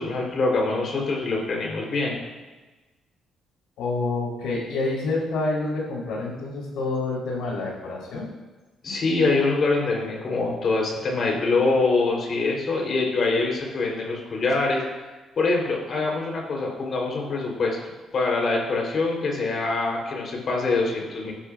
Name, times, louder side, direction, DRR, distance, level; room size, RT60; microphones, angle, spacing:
voice 1, 0.0-2.2 8.8-15.1 15.4-17.8 18.1-21.3, left 3 dB, 55° left, -1 dB, 3.8 m, -24 dB
voice 2, 3.8-8.3, left 3 dB, 90° left, -4 dB, 4.0 m, -28 dB
17.5 x 11.0 x 2.6 m, 1.2 s
cardioid pair, 90°, 0 cm